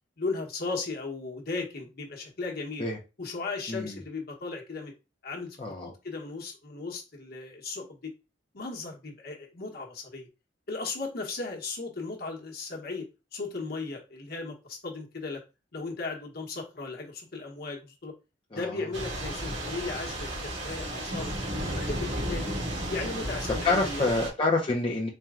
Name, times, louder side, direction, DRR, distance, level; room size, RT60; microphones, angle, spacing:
voice 1, 0.2-2.9 3.2-4.9 5.2-8.1 8.5-10.3 10.7-15.4 15.7-18.1 18.5-21.3 21.6-22.5 22.9-24.1, left 3 dB, 55° left, 0 dB, 1.1 m, -36 dB
voice 2, 3.7-4.0 5.6-5.9 18.5-18.8 23.6-25.1, left 2 dB, 25° left, -2 dB, 0.6 m, -27 dB
Thunder / Rain, 18.9-24.3, right 1 dB, 75° right, 1.7 m, -33 dB
4.4 x 2.2 x 3.6 m, 0.28 s
head